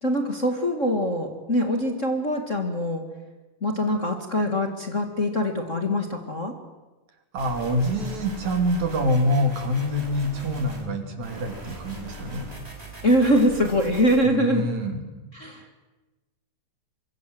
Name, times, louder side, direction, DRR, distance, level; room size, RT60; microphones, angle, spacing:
voice 1, 0.0-3.0 3.6-6.5 13.0-14.7 15.3-15.7, equal, 30° left, 3 dB, 2.0 m, -23 dB
voice 2, 7.3-12.5 14.2-15.0, equal, 70° right, 5 dB, 4.2 m, -25 dB
sound 1, 7.4-10.8 11.2-14.2, equal, 20° right, 4.8 m, -41 dB
24.5 x 24.0 x 7.8 m, 1.1 s
omnidirectional pair, 3.5 m